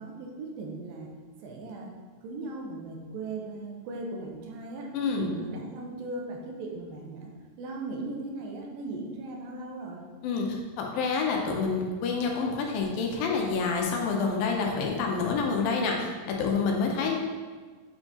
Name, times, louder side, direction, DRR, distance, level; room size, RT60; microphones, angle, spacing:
voice 1, 0.0-1.9 2.2-7.3 7.6-10.0, right 2 dB, 90° right, 0 dB, 2.6 m, -38 dB
voice 2, 4.9-5.3 10.2-17.2, left 4 dB, 85° left, 1 dB, 2.5 m, -28 dB
7.6 x 4.5 x 2.8 m, 1.5 s
omnidirectional pair, 4.0 m